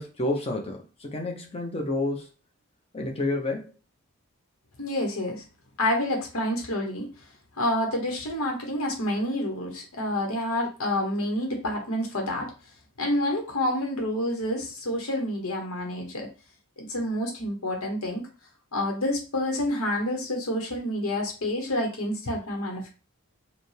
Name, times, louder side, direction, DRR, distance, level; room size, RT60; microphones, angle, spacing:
voice 1, 0.0-2.3 2.9-3.7, left 2 dB, 25° left, 1 dB, 0.8 m, -29 dB
voice 2, 4.8-5.4 5.8-7.1 7.6-12.5 13.0-16.3 16.8-18.2 18.7-22.9, left 1 dB, 70° left, 1 dB, 1.1 m, -28 dB
5.1 x 2.3 x 3.3 m, 0.33 s
head